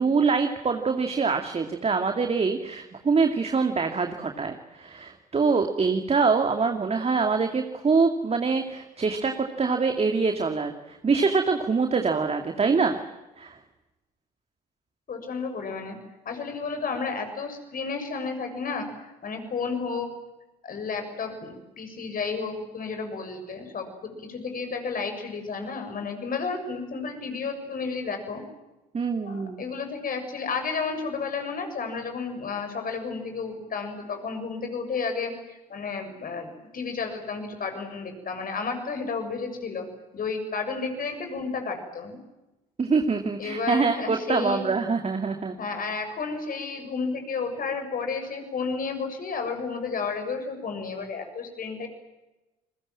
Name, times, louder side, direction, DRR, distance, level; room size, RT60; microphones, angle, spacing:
voice 1, 0.0-9.3 9.6-13.0 13.4-13.6 28.9-29.7 42.8-45.6, right 4 dB, 30° right, 5 dB, 2.5 m, -24 dB
voice 2, 15.1-16.0 16.3-18.9 19.2-20.1 20.6-28.4 29.2-39.9 40.1-42.2 43.4-44.7 45.6-51.9, left 4 dB, 45° left, 6 dB, 7.0 m, -32 dB
29.5 x 22.0 x 7.6 m, 1.0 s
hypercardioid pair, 55°, 20 cm